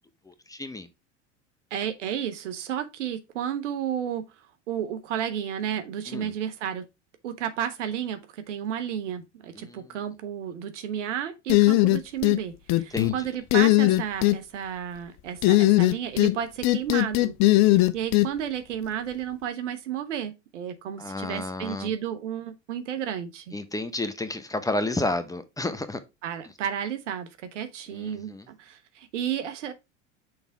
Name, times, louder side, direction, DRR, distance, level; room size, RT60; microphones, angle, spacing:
voice 1, 0.2-0.9 6.1-6.3 9.6-10.0 12.9-13.3 21.0-21.9 23.5-26.0 27.9-28.5, left 2 dB, 10° left, 0.9 m, -31 dB
voice 2, 1.7-4.3 4.7-6.8 7.2-17.3 17.6-23.5 26.2-29.7, right 9 dB, 80° right, 1.0 m, -32 dB
sound 1, 11.5-12.4 12.7-13.1 13.5-14.4 15.4-16.4 16.6-18.3, left 19 dB, 50° left, 0.7 m, -19 dB
6.2 x 3.5 x 4.6 m
hypercardioid pair, 80°, 36 cm